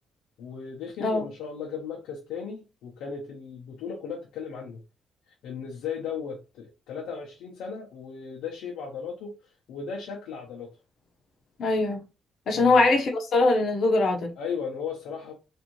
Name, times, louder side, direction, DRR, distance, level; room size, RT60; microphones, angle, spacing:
voice 1, 0.4-4.8 5.3-10.7 12.5-12.8 14.4-15.3, left 6 dB, 90° left, 0.7 m, -36 dB
voice 2, 11.6-12.0 12.5-14.3, left 3 dB, 60° left, 0.9 m, -22 dB
3.3 x 2.7 x 3.0 m
cardioid pair, 90°, 0 cm